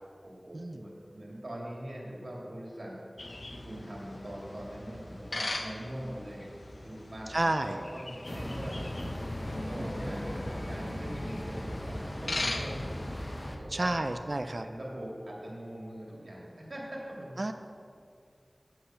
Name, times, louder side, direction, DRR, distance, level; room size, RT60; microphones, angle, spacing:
voice 1, 0.2-3.0 3.2-6.5 6.8-10.3 10.6-13.0 13.4-14.0 14.6-17.4, right 1 dB, 70° right, -4 dB, 2.3 m, -42 dB
sound 1, 3.2-13.5, left 2 dB, 70° left, 0.7 m, -41 dB
voice 2, 7.3-7.8 9.8-10.1 13.7-14.6 17.4-17.5, right 2 dB, 50° right, 8 dB, 0.4 m, -31 dB
sound 2, 8.2-13.6, left 1 dB, 30° left, 1.1 m, -37 dB
8.3 x 7.8 x 5.7 m, 2.4 s
wide cardioid pair, 55°, 0 cm